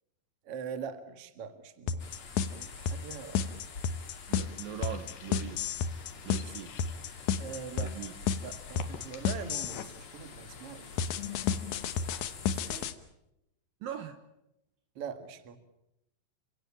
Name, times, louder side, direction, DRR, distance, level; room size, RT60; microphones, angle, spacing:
voice 1, 0.4-2.1 2.5-3.6 7.4-7.9 8.4-10.9 12.5-13.0 15.0-15.6, right 6 dB, 50° right, 9 dB, 2.0 m, -42 dB
sound 1, 1.9-9.9 11.0-12.9, left 7 dB, 90° left, 1.6 m, -31 dB
sound 2, 2.0-12.9, left 4 dB, 40° left, 2.4 m, -48 dB
voice 2, 4.3-5.6 6.2-6.7 7.8-8.1 13.8-14.2, right 9 dB, 65° right, 8 dB, 2.6 m, -40 dB
sound 3, 4.8-12.5, left 10 dB, 65° left, 3.1 m, -48 dB
29.5 x 17.0 x 8.7 m, 0.88 s
omnidirectional pair, 5.0 m